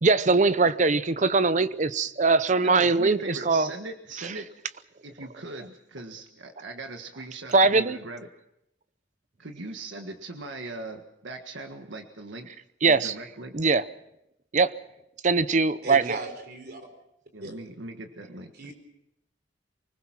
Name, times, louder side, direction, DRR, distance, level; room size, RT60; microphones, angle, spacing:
voice 1, 0.0-3.7 7.5-8.0 12.8-13.1 13.5-13.8 14.5-14.7 15.2-16.2, right 3 dB, 40° right, 0.7 m, -21 dB
voice 2, 2.6-4.5 5.0-8.3 9.4-12.5 12.8-13.6 17.3-18.7, right 2 dB, 85° right, 1.6 m, -39 dB
voice 3, 15.8-16.8 17.4-17.6 18.6-18.7, right 2 dB, 55° right, 4.6 m, -37 dB
24.5 x 20.0 x 6.0 m
head